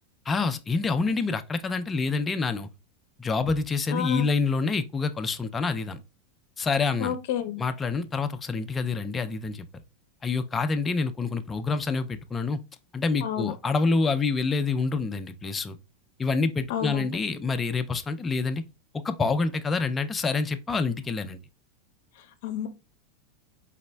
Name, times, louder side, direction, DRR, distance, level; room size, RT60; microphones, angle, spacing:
voice 1, 0.3-2.7 3.2-6.0 6.6-7.2 7.6-9.7 10.2-12.6 12.9-15.8 16.2-18.6 18.9-21.4, left 4 dB, 15° left, 0.4 m, -27 dB
voice 2, 3.9-4.3 7.0-7.6 13.2-13.5 16.7-17.1 22.2-22.7, left 10 dB, 65° left, 0.6 m, -30 dB
4.0 x 4.0 x 2.2 m
supercardioid pair, 155°, 0 cm